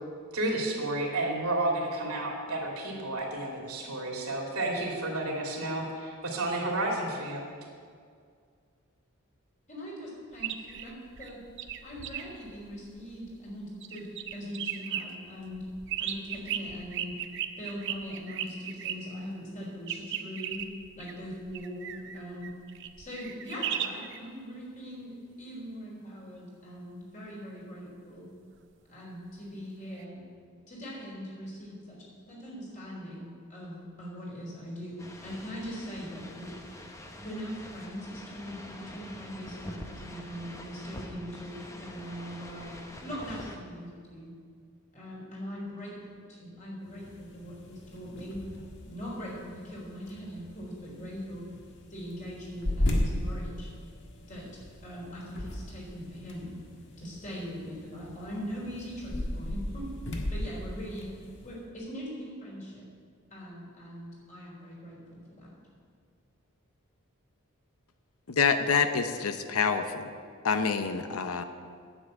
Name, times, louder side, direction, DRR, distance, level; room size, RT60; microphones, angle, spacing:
voice 1, 0.3-7.4, right 2 dB, 85° right, -1 dB, 2.7 m, -31 dB
voice 2, 9.7-11.4 11.8-15.7 16.0-17.2 17.6-20.7 21.0-22.5 23.0-28.3 28.9-30.2 30.7-36.5 37.2-42.8 43.0-44.3 44.9-48.4 48.8-53.7 54.3-54.5 54.8-56.5 57.0-59.9 60.3-61.1 61.4-62.8 63.3-65.5, equal, 35° left, -4 dB, 3.9 m, -41 dB
sound 1, 10.3-13.5 13.8-15.0 15.5-19.0 19.9-24.2 30.0-30.1, right 10 dB, 55° right, 0.7 m, -36 dB
sound 2, 35.0-43.6, left 1 dB, 15° left, 0.8 m, -45 dB
sound 3, 46.8-61.6, left 1 dB, 55° left, 1.6 m, -37 dB
voice 3, 68.3-70.1 70.4-71.4, left 5 dB, 80° left, 8 dB, 0.7 m, -27 dB
9.9 x 7.4 x 8.7 m, 2.1 s
head